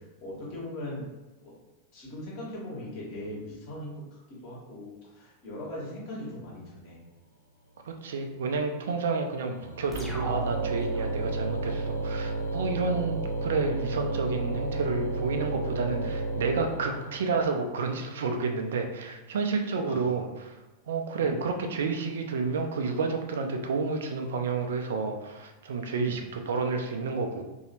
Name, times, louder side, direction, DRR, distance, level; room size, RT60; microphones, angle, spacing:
voice 1, 0.2-1.0 1.4-1.5 1.9-7.0 19.7-20.0 21.2-21.4 25.9-26.2, left 1 dB, 45° left, -5 dB, 1.3 m, -39 dB
sound 1, 7.3-18.2, right 2 dB, 80° left, 0.5 m, -43 dB
voice 2, 7.9-20.6 20.9-27.4, right 4 dB, 60° right, 4 dB, 0.4 m, -30 dB
sound 2, 9.9-17.4, right 2 dB, ahead, 0.7 m, -32 dB
3.1 x 2.7 x 2.8 m, 1.1 s
figure-of-eight pair, 90°, 0 cm